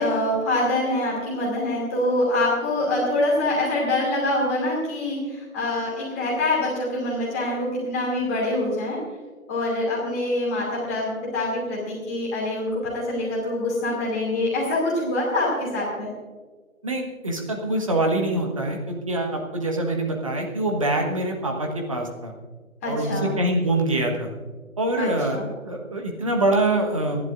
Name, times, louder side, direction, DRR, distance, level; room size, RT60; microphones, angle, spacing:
voice 1, 0.0-9.0 9.5-16.1 22.8-23.3 25.0-25.5, left 1 dB, 10° left, -5 dB, 2.5 m, -25 dB
voice 2, 16.8-22.3 22.8-24.3 24.8-27.3, right 1 dB, 25° right, 2 dB, 1.3 m, -25 dB
27.0 x 11.5 x 2.5 m, 1.4 s
figure-of-eight pair, 155°, 41 cm